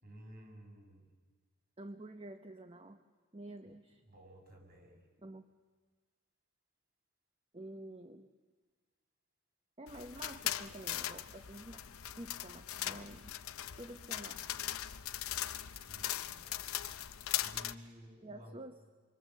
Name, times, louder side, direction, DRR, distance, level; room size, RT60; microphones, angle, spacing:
voice 1, 0.0-1.1 4.0-5.0 15.9-16.7 17.4-18.7, equal, 40° right, 0 dB, 6.2 m, -54 dB
voice 2, 1.8-3.0 3.3-4.0 5.2-5.5 7.5-8.3 9.8-11.9 12.2-13.3 13.8-14.4 18.2-18.8, right 1 dB, 25° right, 8 dB, 0.8 m, -49 dB
sound 1, 9.9-17.7, left 12 dB, 75° left, 0.8 m, -40 dB
27.0 x 24.5 x 7.5 m, 1.4 s
head